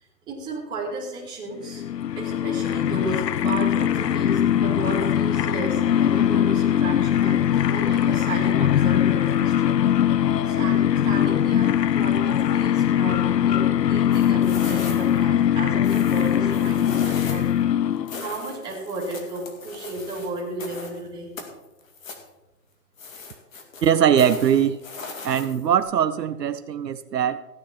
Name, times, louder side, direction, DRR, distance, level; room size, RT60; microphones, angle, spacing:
voice 1, 0.3-1.8 2.2-9.8 10.5-17.5 17.9-21.3, right 2 dB, 10° right, -5 dB, 2.3 m, -33 dB
sound 1, 1.6-18.3, left 10 dB, 80° left, 0.7 m, -21 dB
sound 2, 14.1-15.2 15.8-17.6 18.1-21.0 21.4-22.3 23.0-25.8, left 4 dB, 55° left, 2.4 m, -39 dB
voice 2, 23.8-24.8 25.2-27.4, right 9 dB, 75° right, 12 dB, 0.8 m, -21 dB
15.0 x 9.7 x 4.3 m, 0.98 s
hypercardioid pair, 160°, 49 cm